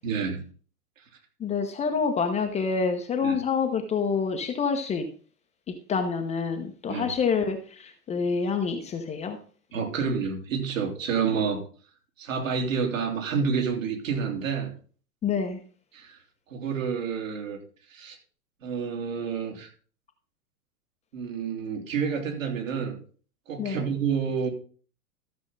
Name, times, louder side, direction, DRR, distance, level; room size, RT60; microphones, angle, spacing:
voice 1, 0.0-0.4 3.2-3.4 6.9-7.1 9.7-11.6 12.2-14.7 15.9-16.2 16.5-17.6 17.9-18.2 18.6-19.7 21.1-23.0 23.5-24.5, right 6 dB, 60° right, 2 dB, 3.1 m, -29 dB
voice 2, 1.4-5.1 5.7-9.4 15.2-15.6 23.6-23.8, left 5 dB, 15° left, 5 dB, 0.9 m, -27 dB
13.5 x 7.2 x 4.0 m, 0.41 s
figure-of-eight pair, 100°, 45 cm